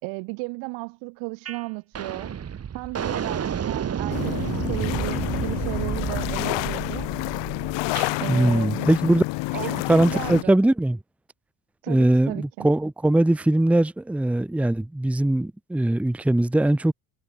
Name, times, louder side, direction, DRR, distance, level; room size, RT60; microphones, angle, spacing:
voice 1, 0.0-2.3 2.7-7.1 8.2-8.9 9.5-10.5 11.8-12.7, right 31 dB, 90° right, 4.5 m, -34 dB
sound 1, 1.5-1.6 1.9-8.1, right 8 dB, 35° right, 3.2 m, -30 dB
sound 2, 4.1-10.4, left 23 dB, 80° left, 4.3 m, -29 dB
voice 2, 8.3-9.2 9.9-11.0 11.9-16.9, right 1 dB, 5° right, 0.8 m, -21 dB
cardioid pair, 120°, 43 cm